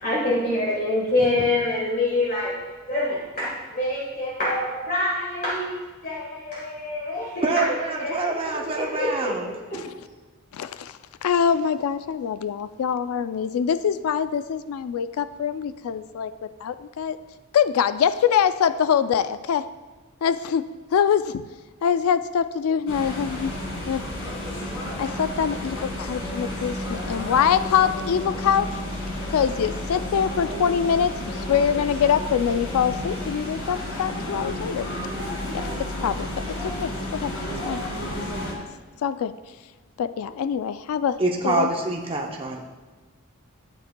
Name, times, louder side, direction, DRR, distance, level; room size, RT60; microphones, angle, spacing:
voice 1, 0.0-2.5 2.9-5.7 6.0-8.3 8.7-9.3 9.7-9.8, left 2 dB, 40° left, -5 dB, 1.4 m, -26 dB
voice 2, 7.4-9.5 41.2-42.6, right 3 dB, 25° right, 0 dB, 0.7 m, -26 dB
voice 3, 10.5-16.3 16.6-17.2 17.5-19.7 20.2-21.4 21.8-23.5 23.9-24.0 25.0-28.8 29.3-34.9 35.8-37.3 37.6-37.8 39.0-39.3 40.0-41.7, left 7 dB, 80° left, 13 dB, 0.3 m, -24 dB
sound 1, 22.9-38.5, left 1 dB, 60° left, 1.9 m, -31 dB
12.5 x 8.3 x 2.2 m, 1.3 s
head